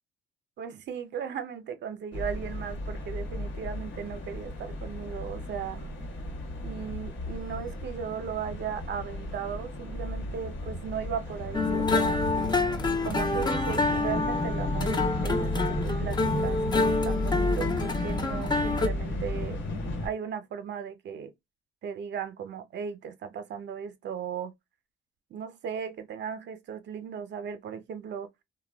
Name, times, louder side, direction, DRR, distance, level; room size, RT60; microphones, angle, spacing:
voice 1, 0.6-5.9 6.6-12.2 13.0-19.6 20.0-21.3 21.8-24.5 25.3-28.3, right 7 dB, 60° right, 0.6 m, -36 dB
sound 1, 2.1-20.1, left 1 dB, 70° left, 1.1 m, -33 dB
sound 2, 11.5-18.9, left 3 dB, 20° left, 0.5 m, -28 dB
2.2 x 2.1 x 3.3 m
cardioid pair, 90°, 20 cm